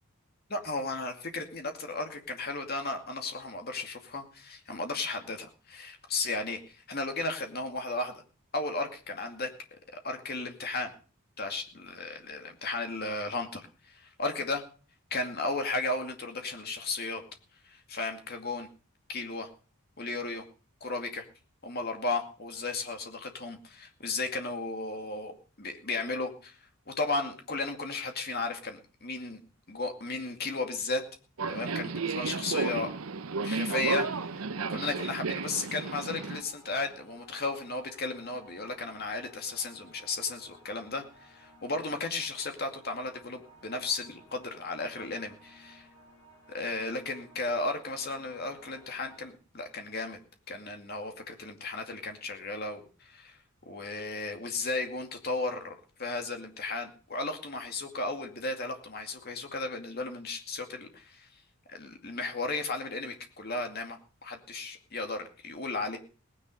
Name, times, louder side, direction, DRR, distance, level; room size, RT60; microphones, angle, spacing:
voice 1, 0.5-8.2 8.5-10.9 11.4-14.6 15.1-17.2 17.6-18.7 19.1-19.5 20.0-20.5 20.8-21.2 21.6-26.6 26.9-29.4 29.7-31.0 31.5-33.0 33.4-45.9 46.5-50.2 50.5-53.4 53.7-61.4 61.7-66.0, left 3 dB, 45° left, 5 dB, 2.3 m, -35 dB
Subway metro underground, 31.4-36.4, right 4 dB, 70° right, 0.7 m, -33 dB
sound 1, 35.7-49.3, right 1 dB, 80° left, 3.4 m, -57 dB
18.0 x 9.8 x 5.4 m, 0.38 s
head